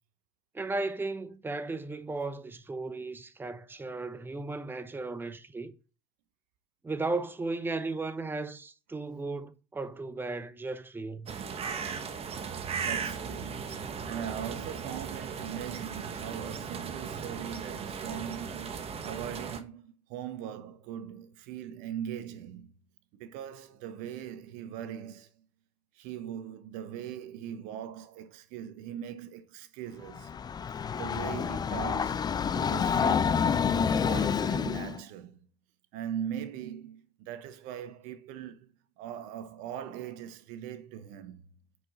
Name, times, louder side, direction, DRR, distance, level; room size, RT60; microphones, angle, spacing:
voice 1, 0.5-5.7 6.8-11.4, right 3 dB, 15° right, 0.8 m, -35 dB
sound 1, 11.3-19.6, right 6 dB, 40° right, 1.3 m, -37 dB
voice 2, 12.8-22.7 23.1-25.4 25.9-30.3 31.0-33.5 34.0-35.4 35.9-38.7 39.0-41.5, right 9 dB, 65° right, 0.9 m, -40 dB
Train, 30.1-35.0, left 7 dB, 25° left, 0.5 m, -28 dB
9.3 x 5.0 x 4.1 m
hypercardioid pair, 65°, 15 cm